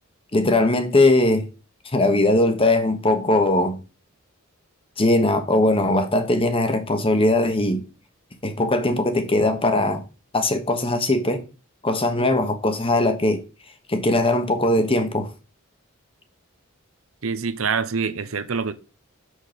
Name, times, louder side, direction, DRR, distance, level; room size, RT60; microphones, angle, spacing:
voice 1, 0.3-1.4 1.9-3.8 5.0-7.8 8.4-10.0 10.3-11.4 11.8-13.4 13.9-15.3, left 2 dB, 25° left, 1.2 m, -20 dB
voice 2, 17.2-18.7, right 5 dB, 70° right, 0.8 m, -25 dB
6.4 x 6.4 x 5.1 m
head